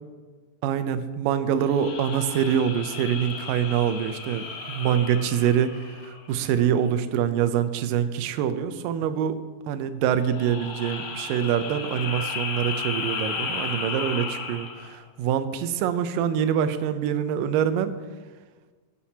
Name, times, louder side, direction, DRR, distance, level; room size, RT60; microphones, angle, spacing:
voice 1, 0.6-9.4 9.7-17.9, right 9 dB, 80° right, 10 dB, 2.2 m, -25 dB
sound 1, 1.6-6.4 10.2-15.0, left 5 dB, 90° left, 3.1 m, -34 dB
15.5 x 9.0 x 2.8 m, 1.4 s
omnidirectional pair, 4.1 m